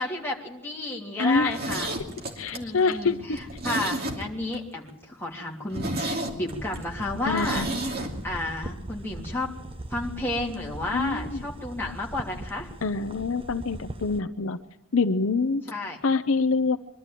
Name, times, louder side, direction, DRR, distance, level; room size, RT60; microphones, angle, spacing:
voice 1, 0.0-1.9 2.5-7.7 8.2-9.5 9.9-12.7 15.7-16.0, left 2 dB, 10° left, -2 dB, 3.0 m, -32 dB
voice 2, 1.2-1.6 2.4-3.2 7.2-7.7 10.9-11.4 12.8-14.6 14.9-15.6 16.0-16.8, left 4 dB, 65° left, 8 dB, 0.7 m, -25 dB
Zipper (clothing), 1.3-4.6 4.9-5.0 5.3-5.4 5.7-8.1 8.4-8.5, right 1 dB, 45° right, 2.8 m, -32 dB
sound 1, 6.5-14.2, right 1 dB, 25° right, 0.9 m, -39 dB
23.5 x 12.5 x 9.0 m, 0.92 s
head